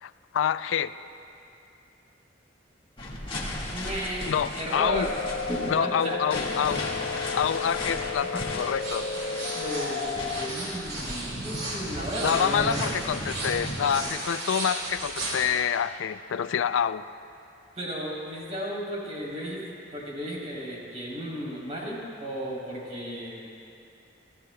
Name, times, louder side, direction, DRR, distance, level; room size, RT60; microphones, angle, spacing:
voice 1, 0.0-0.9 4.3-5.1 5.7-6.9 7.3-9.1 12.2-17.0, left 8 dB, 90° left, 14 dB, 0.4 m, -27 dB
sound 1, 3.0-14.2, left 1 dB, 30° left, 1.8 m, -36 dB
voice 2, 3.7-5.1 5.5-6.4 7.7-7.9 8.3-8.4 9.1-9.2 9.5-12.7 17.8-19.6 19.9-23.4, equal, 40° right, -5 dB, 3.4 m, -34 dB
sound 2, 4.7-10.5, left 5 dB, 60° left, 0.7 m, -33 dB
sound 3, 8.8-15.5, right 1 dB, 85° right, 4.0 m, -35 dB
27.0 x 14.5 x 2.3 m, 2.7 s
head